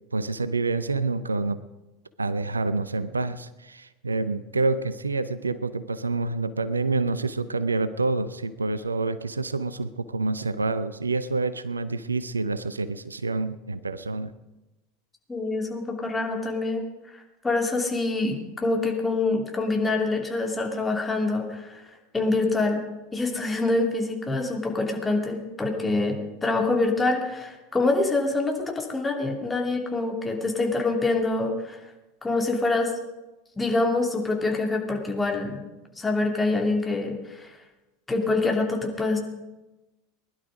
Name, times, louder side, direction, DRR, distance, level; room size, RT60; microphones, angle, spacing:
voice 1, 0.1-1.6 2.2-14.3, right 3 dB, 85° right, 14 dB, 0.6 m, -27 dB
voice 2, 15.3-16.9 17.1-21.8 22.1-22.8 23.1-31.8 32.2-32.9 33.6-35.6 36.0-37.5 38.1-39.2, left 3 dB, 15° left, 2 dB, 2.9 m, -25 dB
20.5 x 11.5 x 5.1 m, 1.0 s
figure-of-eight pair, 80°, 0 cm